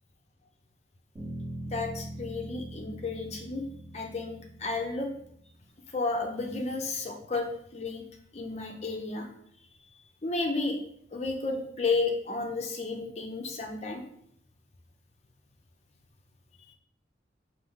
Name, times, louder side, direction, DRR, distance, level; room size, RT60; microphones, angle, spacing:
Bass guitar, 1.2-5.5, right 1 dB, 15° right, 1.6 m, -42 dB
voice 1, 1.7-3.6 3.9-5.1 5.9-8.0 8.3-9.3 9.9-10.8 11.1-14.0 16.7-16.8, left 3 dB, 35° left, 3 dB, 0.5 m, -32 dB
4.8 x 2.6 x 3.6 m, 0.71 s
head